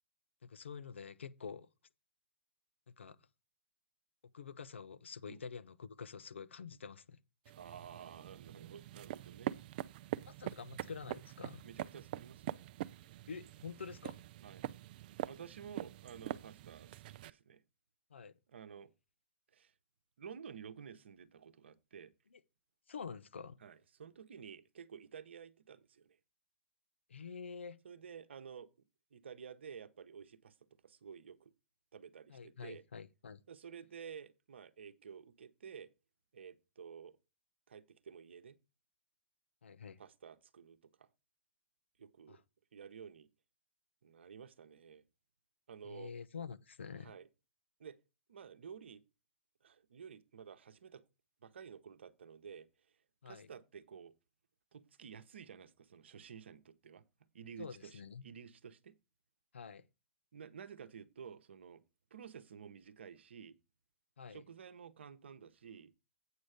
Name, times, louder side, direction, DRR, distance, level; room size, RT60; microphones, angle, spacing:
voice 1, 0.4-1.7 2.9-3.2 4.2-7.2 10.3-11.6 13.3-14.2 18.1-18.3 22.3-22.4 22.9-23.6 27.1-27.8 32.3-33.4 39.6-40.0 42.3-42.4 45.8-47.1 53.2-53.5 57.6-58.2 59.5-59.8 64.2-64.4, left 6 dB, 75° left, 0.7 m, -47 dB
sound 1, 7.5-17.3, right 13 dB, 50° right, 0.5 m, -44 dB
voice 2, 7.5-9.6 11.6-12.6 14.4-14.7 15.2-17.6 18.5-18.9 19.5-19.7 20.2-22.1 23.6-26.2 27.8-28.7 29.1-30.5 30.8-31.5 31.9-32.8 33.5-35.9 36.3-37.2 37.7-38.6 40.0-41.1 42.0-42.4 42.7-43.3 44.0-45.0 45.7-46.1 47.0-47.3 47.8-48.0 48.3-49.0 49.6-51.0 51.4-52.7 53.3-54.1 54.7-57.0 57.3-58.9 60.3-61.8 62.1-63.6 64.3-65.9, right 7 dB, 70° right, 1.0 m, -52 dB
8.3 x 6.4 x 5.0 m
figure-of-eight pair, 115°, 6 cm